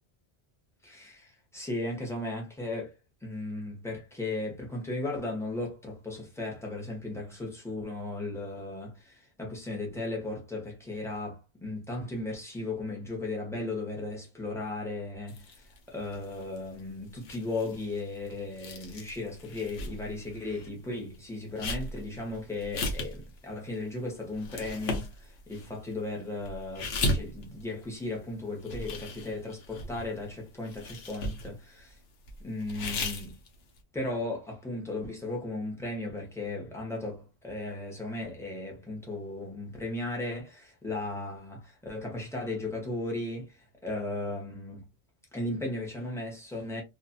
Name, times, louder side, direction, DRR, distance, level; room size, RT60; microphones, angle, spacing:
voice 1, 0.8-2.9 3.2-32.0 32.4-33.4 33.9-44.9 45.3-46.8, left 2 dB, 5° left, 0.9 m, -36 dB
sound 1, 15.3-20.7 21.0-28.3 28.6-30.3 30.6-31.8 32.3-33.8, left 1 dB, 65° left, 0.9 m, -37 dB
2.4 x 2.4 x 2.6 m
omnidirectional pair, 1.1 m